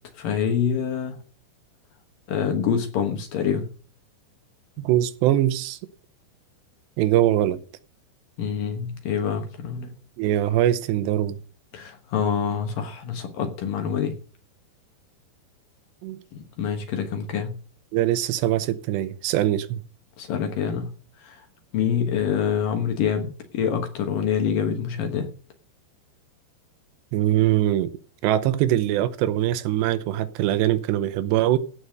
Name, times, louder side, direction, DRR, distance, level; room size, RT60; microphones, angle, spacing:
voice 1, 0.2-1.2 2.3-3.7 8.4-9.9 11.7-14.1 16.3-17.6 20.2-20.9 21.2-21.4 21.7-25.3, left 7 dB, 65° left, 2.5 m, -26 dB
voice 2, 4.8-5.8 7.0-7.6 10.2-11.4 16.0-16.2 17.9-19.8 27.1-27.9 28.2-31.6, right 13 dB, 80° right, 2.9 m, -22 dB
16.5 x 5.7 x 6.5 m
omnidirectional pair, 5.1 m